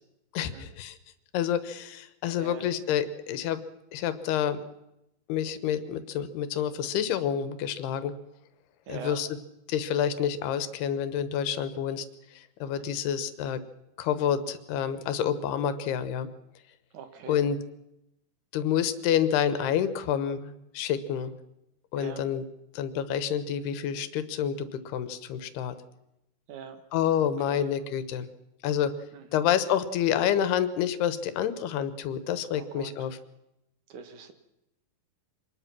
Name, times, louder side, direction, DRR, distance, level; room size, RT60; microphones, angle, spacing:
voice 1, 0.3-1.0 1.3-3.6 3.9-4.6 5.3-8.1 8.9-9.3 9.7-12.1 12.3-13.6 14.0-16.3 17.3-17.6 18.5-21.3 21.9-22.4 22.7-25.8 26.9-28.3 28.6-28.9 29.3-33.2, left 9 dB, 85° left, 12 dB, 3.2 m, -28 dB
voice 2, 2.4-2.7 8.9-9.2 12.7-12.8 16.9-17.4 21.9-22.2 26.5-26.8 27.2-27.7 29.1-29.4 32.5-33.1 33.9-34.3, right 6 dB, 55° right, 8 dB, 3.0 m, -43 dB
25.0 x 19.5 x 6.1 m, 0.88 s
omnidirectional pair, 4.5 m